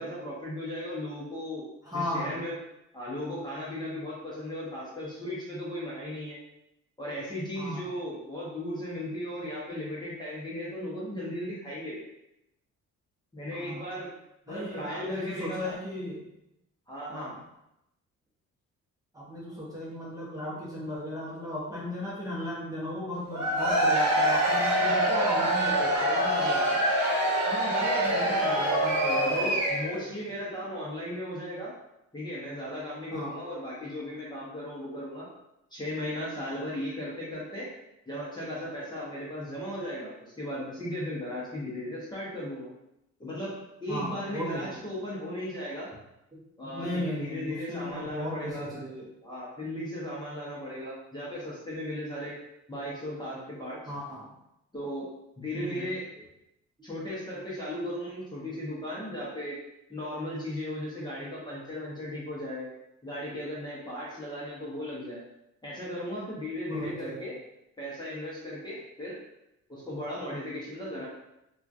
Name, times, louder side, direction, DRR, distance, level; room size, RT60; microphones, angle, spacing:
voice 1, 0.0-1.6 1.9-2.5 2.9-6.4 7.0-12.0 13.3-14.1 14.5-15.7 16.9-17.3 27.4-28.4 29.3-31.7 32.1-35.3 35.7-37.7 38.1-42.7 43.2-43.5 43.8-45.9 46.6-48.8 49.2-52.3 52.7-53.8 54.7-55.1 55.4-56.0 56.8-59.6 59.9-62.7 63.0-65.2 65.6-67.3 67.8-69.2 69.7-71.1, left 1 dB, 15° left, -7 dB, 0.9 m, -36 dB
voice 2, 1.8-2.4 7.6-8.0 13.5-13.9 14.5-16.3 17.1-17.4 19.1-26.8 28.1-29.6 30.6-30.7 33.1-33.4 43.9-44.8 46.3-49.1 53.9-54.3 55.5-55.9 66.7-67.3, left 1 dB, 10° right, -7 dB, 0.9 m, -36 dB
Cheering / Crowd, 23.3-30.0, right 1 dB, 60° right, 1.0 m, -25 dB
2.9 x 2.4 x 2.5 m, 0.85 s
cardioid pair, 100°, 30 cm